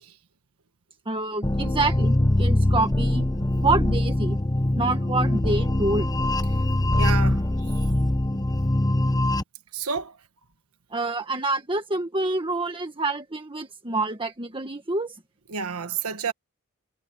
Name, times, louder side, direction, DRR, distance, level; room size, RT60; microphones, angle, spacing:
voice 1, 1.0-3.3 3.6-4.4 4.8-6.1 10.9-15.1, right 2 dB, 25° right, 1.6 m, -27 dB
sound 1, 1.4-9.4, left 1 dB, 20° left, 0.8 m, -23 dB
voice 2, 7.0-7.4 9.7-10.2 15.5-16.3, right 5 dB, 80° right, 1.4 m, -29 dB
head